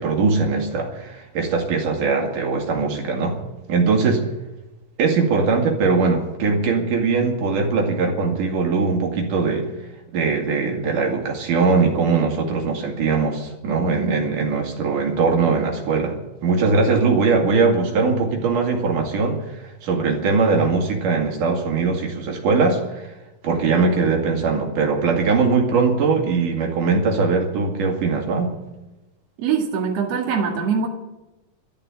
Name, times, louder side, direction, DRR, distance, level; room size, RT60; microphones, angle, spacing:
voice 1, 0.0-3.4 3.7-4.2 5.0-9.7 10.1-16.1 16.4-23.1 23.4-28.5, right 4 dB, 70° right, 1 dB, 3.8 m, -21 dB
voice 2, 29.4-30.9, right 6 dB, 50° right, 0 dB, 2.8 m, -22 dB
13.5 x 11.5 x 8.5 m, 1.0 s
omnidirectional pair, 3.8 m